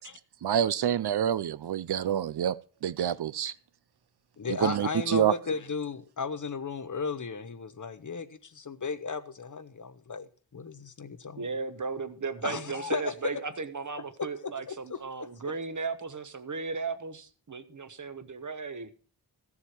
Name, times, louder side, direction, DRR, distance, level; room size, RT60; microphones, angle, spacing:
voice 1, 0.4-3.5 4.5-5.3, right 10 dB, 75° right, 0.5 m, -27 dB
voice 2, 4.4-11.5 12.4-13.4 14.7-15.3, left 5 dB, 50° left, 0.8 m, -35 dB
voice 3, 11.3-18.9, right 4 dB, 50° right, 1.1 m, -36 dB
14.5 x 7.2 x 4.5 m
wide cardioid pair, 85°, 40 cm